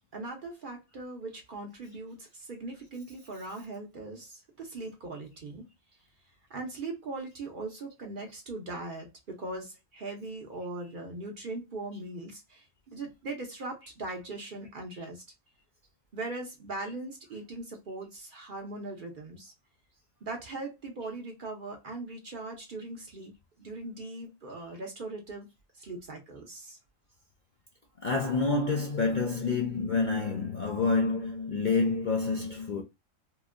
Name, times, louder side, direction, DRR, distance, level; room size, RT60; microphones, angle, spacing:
voice 1, 0.1-5.7 6.5-15.2 16.1-19.5 20.2-25.5 25.7-26.8, right 2 dB, 50° right, 0.7 m, -40 dB
voice 2, 28.0-32.8, left 4 dB, 55° left, 0.5 m, -28 dB
2.9 x 2.6 x 2.4 m
omnidirectional pair, 1.3 m